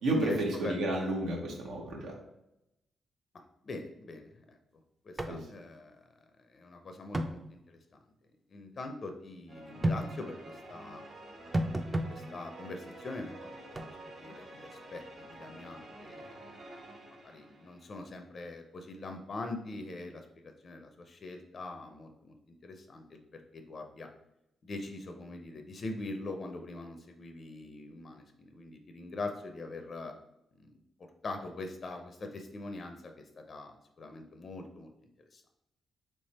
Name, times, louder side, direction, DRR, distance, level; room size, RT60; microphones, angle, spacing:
voice 1, 0.0-2.1 5.3-5.4, right 2 dB, 85° right, 0 dB, 1.0 m, -31 dB
voice 2, 3.3-4.3 5.0-5.9 6.5-7.8 8.5-11.0 11.9-13.4 13.6-13.8 14.2-15.0 15.3-16.4 17.1-22.3 22.6-23.2 23.5-24.1 24.6-30.1 30.6-30.8 31.2-35.4, left 2 dB, 45° left, 5 dB, 0.4 m, -43 dB
sound 1, 5.2-5.4 5.6-5.7 7.1-7.4 9.8-10.0 11.5-12.1 13.7-13.9, right 1 dB, 20° right, 0.4 m, -30 dB
sound 2, 9.5-18.0, right 1 dB, 60° right, 1.4 m, -49 dB
3.3 x 3.1 x 4.1 m, 0.85 s
cardioid pair, 105°, 0 cm